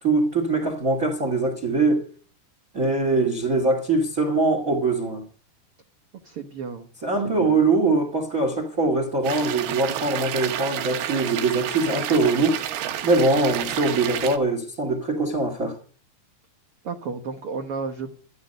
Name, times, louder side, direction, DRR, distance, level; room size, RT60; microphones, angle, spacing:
voice 1, 0.0-2.1 2.7-5.2 7.0-12.7 13.0-15.8, right 3 dB, 30° right, 1.8 m, -22 dB
voice 2, 6.2-6.9 7.4-7.6 16.8-18.1, right 5 dB, 70° right, 1.3 m, -33 dB
sound 1, 9.2-14.4, right 11 dB, 90° right, 3.3 m, -30 dB
13.0 x 12.5 x 5.4 m
omnidirectional pair, 4.4 m